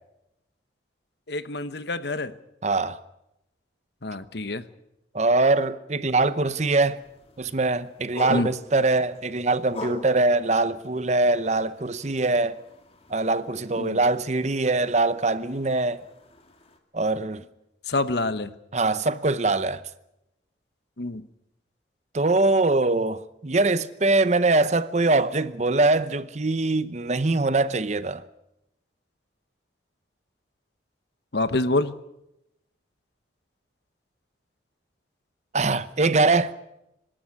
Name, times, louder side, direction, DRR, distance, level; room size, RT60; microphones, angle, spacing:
voice 1, 1.3-2.3 4.0-4.6 8.3-8.5 13.8-14.0 17.9-18.5 21.0-21.3 31.3-31.9, left 2 dB, 65° left, 1.1 m, -26 dB
voice 2, 2.6-3.0 5.1-7.0 7.4-12.6 13.1-16.0 16.9-17.4 18.7-19.8 22.1-28.2 35.5-36.5, right 3 dB, 40° right, 0.8 m, -23 dB
sound 1, 6.6-16.8, left 1 dB, 30° left, 2.3 m, -44 dB
24.5 x 13.0 x 9.7 m
head